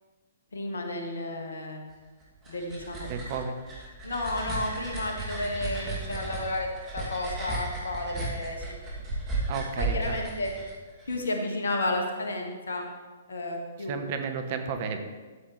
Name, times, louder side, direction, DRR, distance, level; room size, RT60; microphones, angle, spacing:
voice 1, 0.5-1.8 2.5-3.1 4.0-6.7 6.9-8.8 9.8-10.5 11.1-12.9 13.3-13.9, left 2 dB, 70° left, 2 dB, 1.7 m, -32 dB
sound 1, 2.2-11.2, right 2 dB, 20° right, 2.6 m, -35 dB
voice 2, 3.1-3.5 9.5-10.2 13.8-15.0, right 6 dB, 45° right, 6 dB, 1.1 m, -32 dB
12.5 x 7.7 x 3.3 m, 1.3 s
figure-of-eight pair, 120°, 0 cm